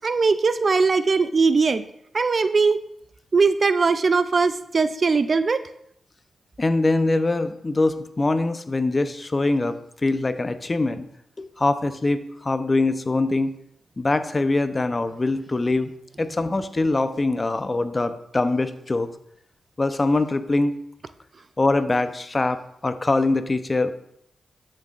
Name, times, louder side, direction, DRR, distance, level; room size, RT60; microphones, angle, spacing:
voice 1, 0.0-1.8 2.1-2.8 3.3-5.6, right 4 dB, 50° right, 12 dB, 0.4 m, -20 dB
voice 2, 6.6-9.8 10.0-11.1 11.4-13.5 14.0-15.9 16.2-19.1 19.8-20.7 21.6-23.9, left 2 dB, 35° left, 10 dB, 0.7 m, -23 dB
13.0 x 6.6 x 2.5 m, 0.73 s
supercardioid pair, 45°, 0 cm